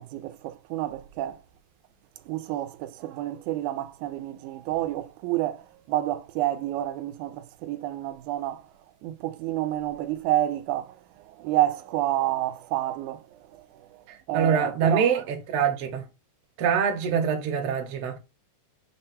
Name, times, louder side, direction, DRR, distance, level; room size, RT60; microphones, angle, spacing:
voice 1, 0.0-1.4 2.3-5.6 5.9-8.6 9.0-10.9 11.3-13.2 14.3-15.1, right 14 dB, 90° right, 2.0 m, -29 dB
voice 2, 14.1-16.0 16.6-18.2, right 7 dB, 65° right, 1.7 m, -25 dB
5.6 x 2.2 x 4.1 m
omnidirectional pair, 3.3 m